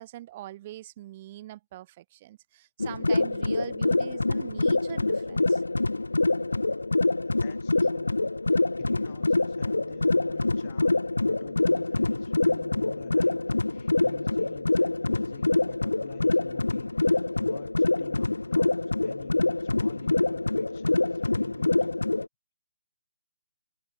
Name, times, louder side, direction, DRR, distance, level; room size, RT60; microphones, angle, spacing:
voice 1, 0.0-5.6, right 15 dB, 30° right, 0.5 m, -43 dB
sound 1, 2.8-22.3, left 2 dB, 75° left, 0.4 m, -25 dB
voice 2, 7.3-8.2 8.5-13.4 13.7-22.2, left 14 dB, 30° left, 4.4 m, -50 dB
figure-of-eight pair, 140°, 0 cm